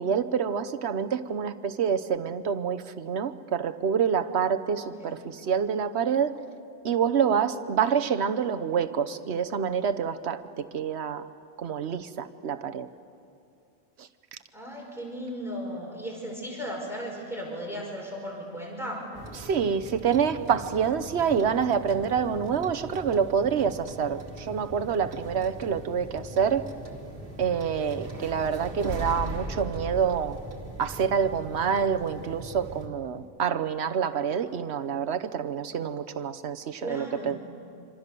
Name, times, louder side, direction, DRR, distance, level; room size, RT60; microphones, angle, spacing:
voice 1, 0.0-6.4 6.8-11.2 11.6-12.9 14.0-14.1 19.3-26.7 27.4-30.4 30.8-37.4, right 7 dB, 80° right, 10 dB, 1.2 m, -27 dB
voice 2, 4.8-5.3 14.5-19.0 36.8-37.4, equal, ahead, -2 dB, 5.4 m, -36 dB
sound 1, 19.1-32.9, right 1 dB, 60° right, 2.2 m, -40 dB
26.5 x 25.5 x 6.8 m, 2.5 s
omnidirectional pair, 1.1 m